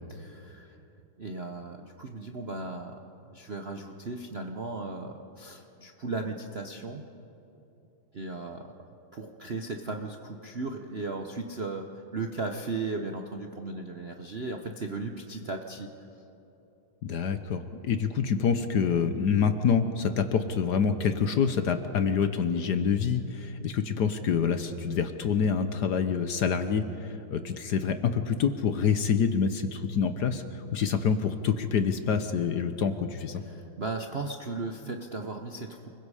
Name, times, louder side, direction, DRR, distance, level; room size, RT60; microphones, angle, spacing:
voice 1, 0.1-0.8 1.2-3.0 3.3-7.0 8.1-8.7 9.1-15.9 33.5-35.9, right 3 dB, 50° right, 3 dB, 0.7 m, -36 dB
voice 2, 17.0-33.4, left 6 dB, 60° left, 9 dB, 1.2 m, -27 dB
29.5 x 21.5 x 4.9 m, 3.0 s
omnidirectional pair, 2.3 m